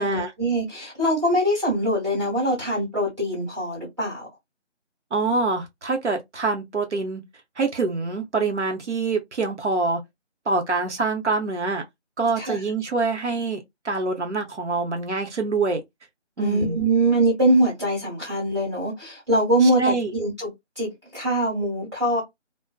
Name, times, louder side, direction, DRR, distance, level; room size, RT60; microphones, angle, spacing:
voice 1, 0.0-4.3 12.4-12.6 16.4-20.5 20.8-22.2, right 1 dB, 25° right, 1.1 m, -23 dB
voice 2, 5.1-7.2 7.6-10.0 10.5-11.8 12.2-15.8 16.4-16.8 19.6-20.1, right 3 dB, 70° right, 0.9 m, -25 dB
2.5 x 2.1 x 2.3 m
figure-of-eight pair, 175°, 36 cm